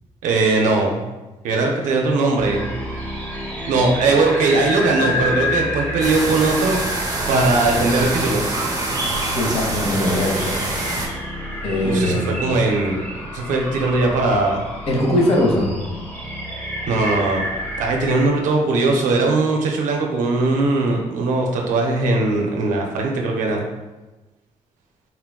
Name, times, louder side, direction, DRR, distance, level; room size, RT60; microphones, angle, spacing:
voice 1, 0.2-1.0 1.4-2.7 3.7-8.5 11.8-14.6 16.9-17.5 17.8-23.6, right 3 dB, 85° right, 0 dB, 0.4 m, -20 dB
sound 1, 2.4-18.3, left 1 dB, 10° left, 0.7 m, -29 dB
sound 2, 6.0-11.1, right 2 dB, 30° right, 0.7 m, -25 dB
voice 2, 9.3-10.6 11.6-12.4 14.9-15.7, left 1 dB, 50° left, -2 dB, 0.9 m, -20 dB
3.8 x 2.2 x 2.2 m, 1.1 s
cardioid pair, 80°, 13 cm